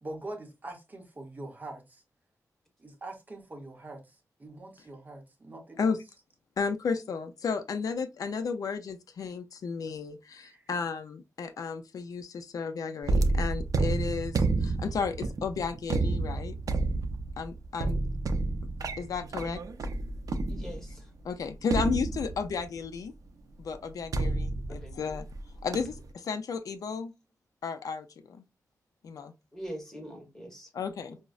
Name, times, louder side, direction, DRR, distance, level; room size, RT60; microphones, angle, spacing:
voice 1, 0.0-2.0 2.8-5.9 10.4-10.7, right 2 dB, 25° right, 0.7 m, -43 dB
voice 2, 6.6-16.6 17.4-18.0 19.0-19.6 21.3-23.1 23.6-25.2 25.6-26.0 26.2-27.1 27.6-28.4 29.0-29.3 30.8-31.2, left 5 dB, 70° left, 0.4 m, -33 dB
sound 1, 13.0-21.0 21.7-22.7 24.1-25.4 25.7-26.1, right 3 dB, 65° right, 0.5 m, -30 dB
voice 3, 20.5-21.1 24.7-25.2 29.5-30.7 31.1-31.2, equal, 10° left, 1.1 m, -43 dB
5.0 x 2.0 x 2.3 m
wide cardioid pair, 175°, 6 cm